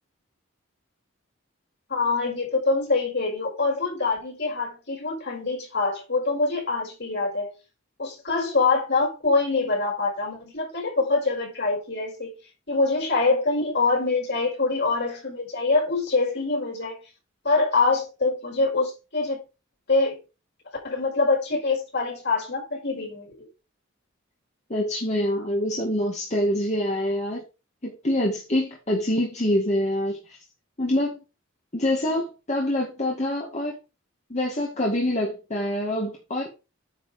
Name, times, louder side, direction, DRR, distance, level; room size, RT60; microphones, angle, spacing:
voice 1, 1.9-7.5 8.0-12.3 12.7-17.0 17.4-19.4 19.9-20.2 20.8-23.3, left 3 dB, 55° left, 5.2 m, -24 dB
voice 2, 24.7-27.4 27.8-30.4 30.8-31.1 31.7-33.8 34.3-36.5, left 1 dB, 35° left, 2.1 m, -25 dB
9.6 x 5.6 x 5.1 m
head